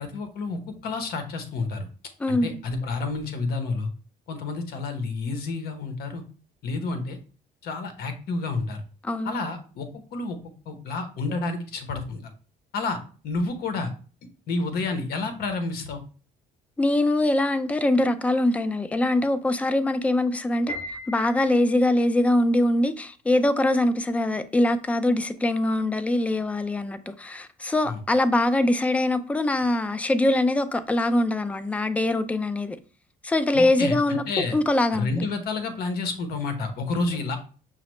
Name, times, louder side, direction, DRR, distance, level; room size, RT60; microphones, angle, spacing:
voice 1, 0.0-1.9 2.3-3.9 4.3-6.2 6.6-7.2 7.6-8.8 9.2-10.4 10.7-12.2 12.7-13.0 13.2-13.9 14.5-16.0 27.8-28.0 33.5-34.6 34.9-37.4, left 3 dB, 65° left, 0.8 m, -29 dB
voice 2, 2.2-2.5 9.0-9.3 16.8-20.7 21.1-32.8 33.2-34.2 34.5-35.3, left 1 dB, 10° left, 0.3 m, -23 dB
Piano, 20.7-22.0, equal, 30° left, 2.0 m, -37 dB
5.6 x 2.0 x 3.0 m
cardioid pair, 110°, 17 cm